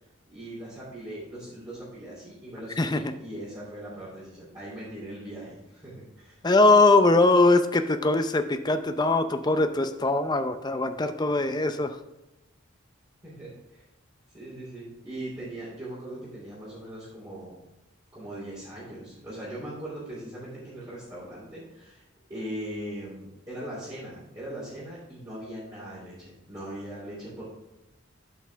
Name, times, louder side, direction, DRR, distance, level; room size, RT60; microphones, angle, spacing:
voice 1, 0.3-6.4 13.2-13.8 14.3-17.6 18.1-27.4, right 1 dB, 20° right, -11 dB, 3.0 m, -40 dB
voice 2, 6.4-12.0, left 2 dB, 20° left, 8 dB, 0.5 m, -21 dB
12.5 x 5.3 x 3.5 m, 0.95 s
head